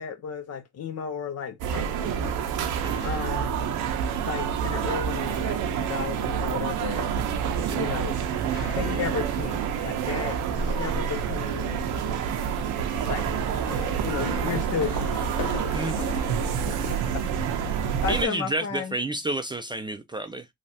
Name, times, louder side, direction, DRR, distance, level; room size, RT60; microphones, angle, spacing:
voice 1, 0.0-2.4 3.0-3.8 4.2-7.1 7.7-8.4 8.7-11.9 13.1-13.3 13.6-15.6 17.1-17.2 18.0-18.9, left 7 dB, 55° left, 0.8 m, -34 dB
sound 1, 1.6-18.3, right 8 dB, 85° right, 0.7 m, -28 dB
voice 2, 2.8-3.1 7.6-7.8 15.7-16.2 18.1-20.5, right 2 dB, 15° right, 0.3 m, -30 dB
sound 2, 8.5-17.3, left 1 dB, 75° left, 1.0 m, -38 dB
3.2 x 2.3 x 2.7 m
cardioid pair, 90°, 30 cm